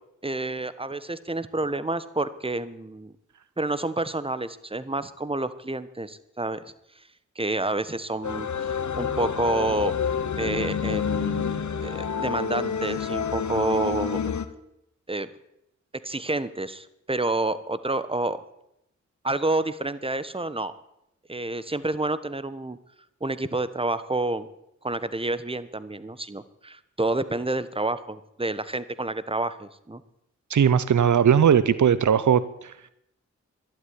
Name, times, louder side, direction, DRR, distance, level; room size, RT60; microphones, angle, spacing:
voice 1, 0.2-3.1 3.6-6.7 7.3-9.9 10.4-14.4 15.1-15.3 16.0-18.4 19.2-20.7 21.3-22.8 23.2-24.5 24.8-30.0, right 2 dB, 20° right, 15 dB, 1.2 m, -29 dB
sound 1, 8.2-14.4, left 7 dB, 80° left, 1.1 m, -28 dB
voice 2, 30.5-32.7, right 8 dB, 80° right, 16 dB, 0.7 m, -19 dB
12.0 x 12.0 x 9.7 m, 0.81 s
cardioid pair, 45°, 29 cm